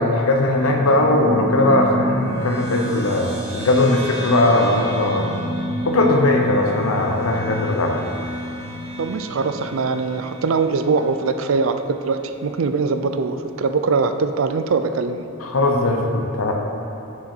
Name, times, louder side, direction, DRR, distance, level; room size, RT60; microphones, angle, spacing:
voice 1, 0.0-5.3 5.8-8.0 15.4-16.6, left 2 dB, 85° left, 2 dB, 0.8 m, -19 dB
sound 1, 0.6-11.4, equal, 30° right, 2.0 m, -29 dB
voice 2, 9.0-15.2, right 4 dB, 70° right, 9 dB, 0.4 m, -22 dB
9.4 x 6.2 x 4.5 m, 2.9 s
head